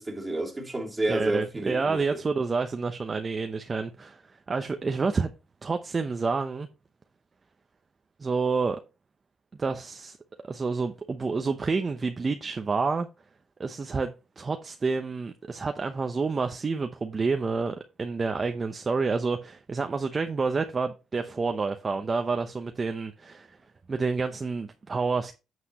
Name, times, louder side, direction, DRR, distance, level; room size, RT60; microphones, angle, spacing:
voice 1, 0.0-2.2, right 2 dB, 15° right, 2.5 m, -30 dB
voice 2, 1.1-5.3 5.6-6.7 8.2-8.8 9.6-10.2 10.4-13.1 13.6-23.6 23.9-25.3, right 4 dB, 35° right, 0.8 m, -29 dB
8.5 x 7.6 x 3.0 m
cardioid pair, 90°, 0 cm